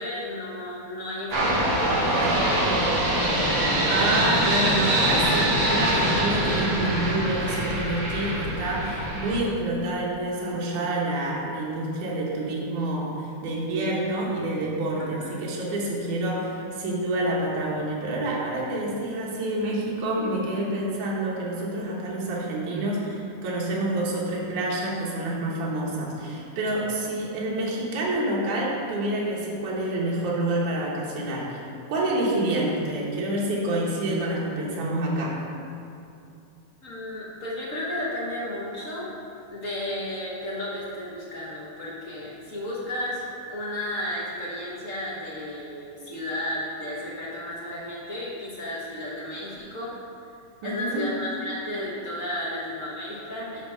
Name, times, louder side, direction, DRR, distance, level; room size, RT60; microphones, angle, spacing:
voice 1, 0.0-3.0 15.0-15.3 36.8-49.9 50.6-53.6, left 1 dB, 65° left, -6 dB, 0.8 m, -33 dB
sound 1, 1.3-9.4, right 1 dB, 45° right, 2.1 m, -24 dB
voice 2, 3.9-35.4 50.6-51.1, right 1 dB, 80° right, -4 dB, 2.8 m, -28 dB
11.0 x 3.7 x 5.6 m, 2.6 s
omnidirectional pair, 3.5 m